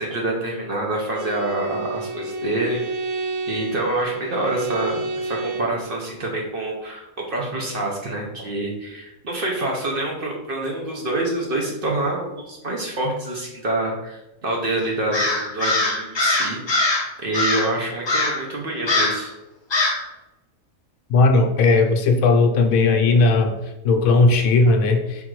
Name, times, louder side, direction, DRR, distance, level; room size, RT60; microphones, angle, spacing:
voice 1, 0.0-2.8 3.5-16.8 17.2-19.3, right 2 dB, 50° right, -1 dB, 0.7 m, -26 dB
Bowed string instrument, 1.1-5.8, right 3 dB, 85° right, 1.0 m, -30 dB
Crow, 15.1-17.1 17.3-17.7 18.1-18.4 18.9-19.2 19.7-20.0, left 2 dB, 40° left, 0.4 m, -21 dB
voice 2, 21.1-23.5 23.8-25.3, left 3 dB, 80° left, 5 dB, 1.0 m, -17 dB
3.7 x 2.5 x 4.5 m, 0.95 s
omnidirectional pair, 1.5 m